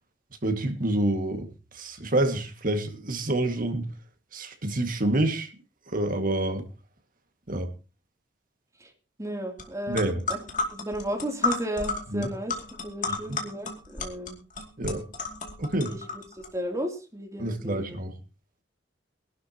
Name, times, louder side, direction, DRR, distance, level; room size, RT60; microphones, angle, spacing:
voice 1, 0.4-1.5 1.7-3.9 4.3-5.5 5.9-6.6 7.5-7.7 9.9-10.2 12.1-12.3 14.8-15.0 15.6-15.9 17.4-18.2, right 1 dB, 50° right, 6 dB, 2.0 m, -27 dB
voice 2, 9.2-12.6 12.8-14.4 15.9-18.0, equal, 20° right, 2 dB, 2.9 m, -34 dB
sound 1, 9.6-9.7 9.9-16.5, left 3 dB, 45° left, 2.5 m, -32 dB
23.5 x 11.5 x 2.9 m, 0.31 s
head